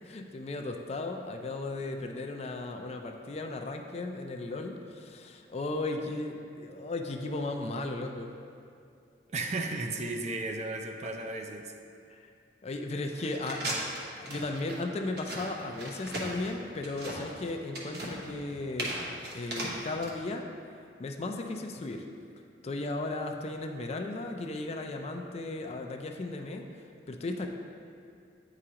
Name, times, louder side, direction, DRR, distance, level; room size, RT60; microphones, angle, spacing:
voice 1, 0.0-8.3 12.1-12.2 12.6-13.9 14.1-19.0 19.3-20.5 21.0-22.1 22.6-26.7 27.1-27.5, left 2 dB, 35° left, 4 dB, 0.4 m, -36 dB
voice 2, 9.3-11.7, right 2 dB, 40° right, 3 dB, 0.5 m, -34 dB
sound 1, 13.1-20.1, right 1 dB, 60° right, 1.0 m, -37 dB
9.0 x 4.8 x 2.9 m, 2.4 s
head